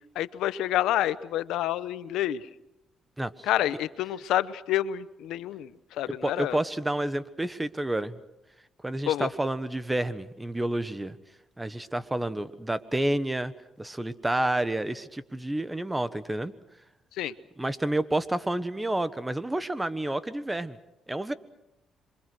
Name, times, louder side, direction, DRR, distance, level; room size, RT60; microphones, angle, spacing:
voice 1, 0.1-2.4 3.4-5.7 6.0-6.6 9.1-9.3 17.2-17.3, left 12 dB, 90° left, 15 dB, 0.9 m, -28 dB
voice 2, 3.2-3.5 6.1-8.2 8.8-11.2 11.6-13.5 13.8-16.5 17.6-20.8 21.1-21.3, right 1 dB, 10° right, 13 dB, 1.3 m, -29 dB
27.0 x 24.0 x 6.3 m, 0.90 s
cardioid pair, 90°, 0 cm